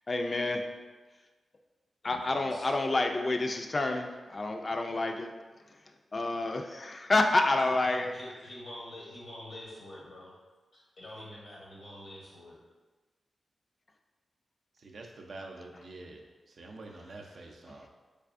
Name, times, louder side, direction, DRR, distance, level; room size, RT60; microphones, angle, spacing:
voice 1, 0.1-0.6 2.0-5.3 6.1-8.1, left 2 dB, 40° left, 4 dB, 0.3 m, -28 dB
voice 2, 2.0-2.7 7.6-10.4 10.7-12.6, left 1 dB, 80° left, -5 dB, 0.7 m, -46 dB
voice 3, 14.8-17.9, right 2 dB, 70° right, 2 dB, 0.4 m, -47 dB
3.4 x 3.2 x 2.4 m, 1.3 s
cardioid pair, 70°, 0 cm